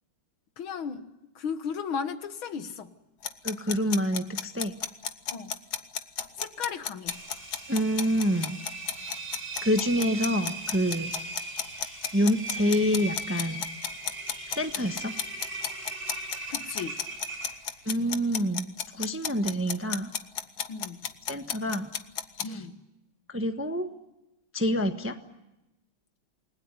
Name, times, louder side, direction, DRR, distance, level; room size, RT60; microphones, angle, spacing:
voice 1, 0.6-1.1 1.4-2.9 5.3-5.6 6.4-7.2 16.5-17.0 20.7-21.1 22.4-22.8, left 6 dB, 70° left, 10 dB, 2.2 m, -35 dB
sound 1, 3.2-22.4, left 8 dB, 55° left, 1.5 m, -33 dB
voice 2, 3.4-4.7 7.7-8.6 9.6-11.1 12.1-13.6 14.5-15.2 17.8-20.1 21.3-21.9 22.3-22.6 23.3-23.9 24.5-25.2, equal, 10° right, 7 dB, 0.9 m, -27 dB
Engine, 7.1-17.9, right 3 dB, 50° right, 6.2 m, -39 dB
29.0 x 20.5 x 9.8 m, 0.96 s
omnidirectional pair, 2.4 m